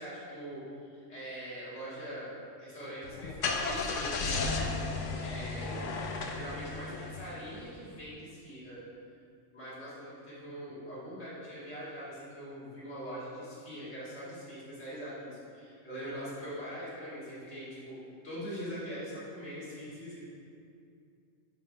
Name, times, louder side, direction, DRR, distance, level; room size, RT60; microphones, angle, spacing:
voice 1, 0.0-4.7 5.2-5.9 6.3-8.9 9.5-20.2, equal, 65° left, -11 dB, 2.5 m, -42 dB
Car / Engine starting, 3.0-7.7, left 3 dB, 80° left, 1.1 m, -34 dB
9.5 x 3.6 x 5.5 m, 2.5 s
omnidirectional pair, 1.3 m